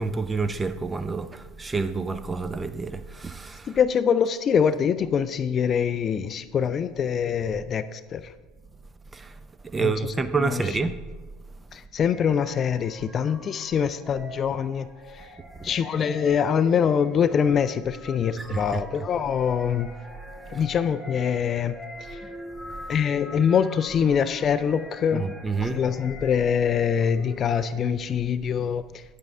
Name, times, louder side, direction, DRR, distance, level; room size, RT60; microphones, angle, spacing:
voice 1, 0.0-3.8 9.1-9.3 9.6-11.0 15.6-15.7 18.4-19.1 20.5-20.6 25.1-25.8, right 4 dB, 20° right, 0.5 m, -29 dB
voice 2, 3.7-8.3 9.8-10.6 11.7-14.9 15.1-15.3 15.6-19.9 20.5-21.7 22.1-22.2 22.9-25.3 25.6-29.0, left 7 dB, 35° left, 0.3 m, -24 dB
sound 1, 12.0-28.2, equal, ahead, 1.6 m, -44 dB
9.4 x 8.2 x 3.6 m
figure-of-eight pair, 70°, 0 cm